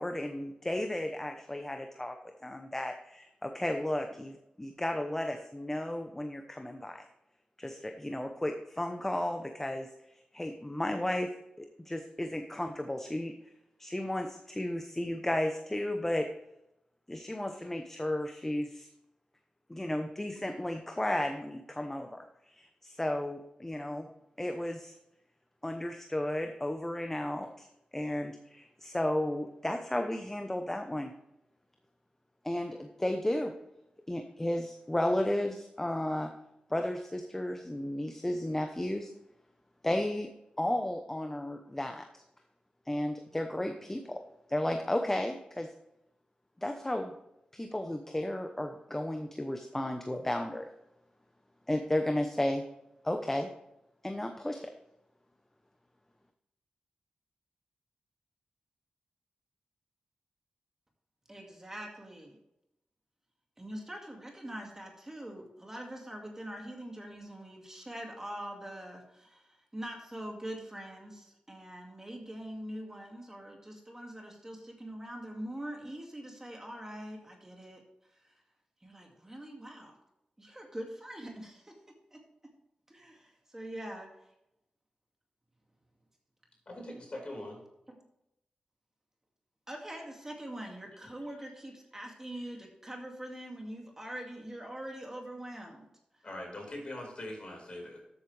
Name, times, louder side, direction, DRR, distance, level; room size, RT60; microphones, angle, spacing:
voice 1, 0.0-2.2 2.4-7.1 7.6-9.9 10.3-13.3 13.8-16.3 17.1-18.9 19.7-22.3 22.5-24.1 24.4-24.9 25.6-27.7 27.9-31.1 32.4-33.5 34.1-36.3 36.7-39.1 39.8-40.3 40.6-42.2 42.9-44.2 44.5-45.7 46.6-47.1 47.5-50.7 51.7-52.7 53.0-53.5 54.0-54.7, left 1 dB, 15° left, 5 dB, 0.9 m, -33 dB
voice 2, 61.3-62.4 63.6-77.8 78.2-78.3 78.8-79.9 80.4-81.8 82.1-82.2 82.9-84.1 87.9-88.0 89.7-95.9, right 1 dB, 20° right, 1 dB, 2.1 m, -43 dB
voice 3, 86.7-87.6 91.0-91.1 91.4-91.5 96.2-98.0, left 1 dB, 45° left, 0 dB, 4.5 m, -42 dB
13.0 x 8.0 x 3.3 m, 0.83 s
wide cardioid pair, 85°, 3 cm